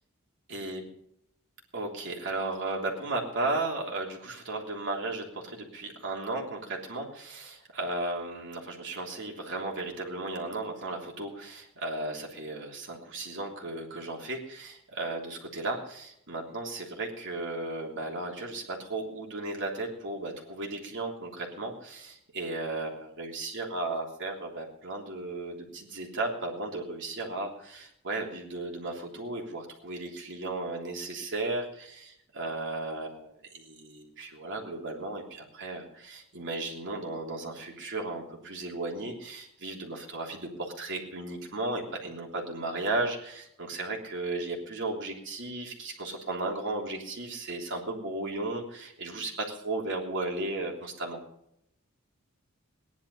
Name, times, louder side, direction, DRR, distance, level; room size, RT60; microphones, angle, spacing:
voice 1, 0.5-0.8 1.7-51.2, right 2 dB, 55° right, 0 dB, 3.3 m, -35 dB
18.0 x 11.0 x 5.5 m, 0.76 s
head